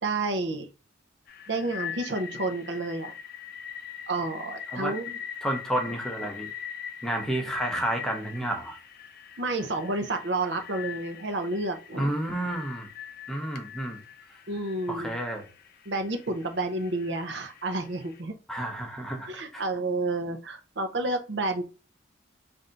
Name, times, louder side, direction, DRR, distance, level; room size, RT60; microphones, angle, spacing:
voice 1, 0.0-0.7 1.5-3.1 4.1-5.2 9.4-12.1 14.5-15.1 15.9-18.3 19.3-21.6, right 2 dB, 60° right, 6 dB, 0.6 m, -30 dB
sound 1, 1.3-18.2, left 8 dB, 50° left, 0.5 m, -42 dB
voice 2, 5.4-6.5 7.0-8.8 12.0-12.9 13.3-14.0 14.9-15.5 18.5-19.6, right 1 dB, 5° left, 2 dB, 0.7 m, -30 dB
3.3 x 2.7 x 3.8 m, 0.33 s
head